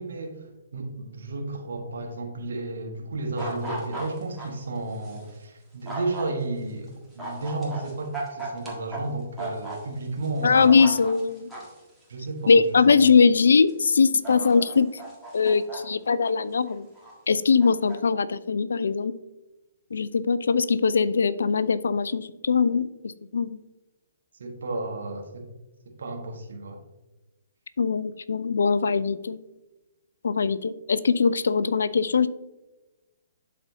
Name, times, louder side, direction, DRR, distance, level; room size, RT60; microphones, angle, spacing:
voice 1, 0.0-10.7 12.1-12.8 24.4-25.4 26.0-26.8, right 2 dB, 60° right, 2 dB, 1.3 m, -33 dB
sound 1, 3.4-4.5 5.0-5.2 5.9-6.3 7.2-9.0 9.4-9.8 10.2-11.8 12.6-12.7 13.7-13.8 14.2-15.8 16.4-17.1 17.6-18.0, right 2 dB, 5° right, 1.6 m, -36 dB
voice 2, 10.4-11.5 12.5-14.9 15.3-16.9 17.3-19.1 19.9-22.9 23.3-23.6 27.8-29.4 30.2-32.3, left 5 dB, 65° left, 16 dB, 0.3 m, -21 dB
11.5 x 4.2 x 2.7 m, 1.1 s
figure-of-eight pair, 125°, 0 cm